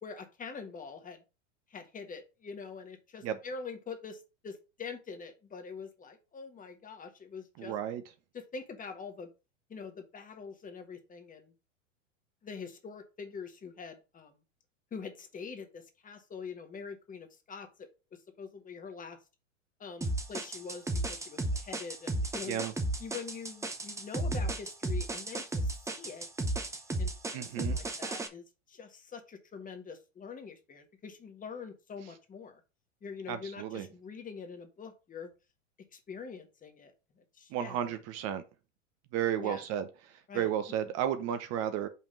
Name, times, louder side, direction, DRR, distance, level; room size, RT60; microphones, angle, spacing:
voice 1, 0.0-1.2 1.7-7.7 8.3-9.3 9.7-11.5 12.4-14.3 14.9-19.2 19.8-22.6 23.0-26.3 27.0-32.6 33.0-35.3 35.9-38.0 39.4-39.6 40.3-40.5, left 5 dB, 20° left, 1.4 m, -44 dB
voice 2, 7.6-8.0 22.5-22.7 27.3-27.8 33.3-33.9 37.5-38.4 39.1-41.9, right 10 dB, 40° right, 0.9 m, -33 dB
Dnb Loop, 20.0-28.3, right 1 dB, 10° right, 0.8 m, -34 dB
5.6 x 3.5 x 5.5 m
hypercardioid pair, 105°, 37 cm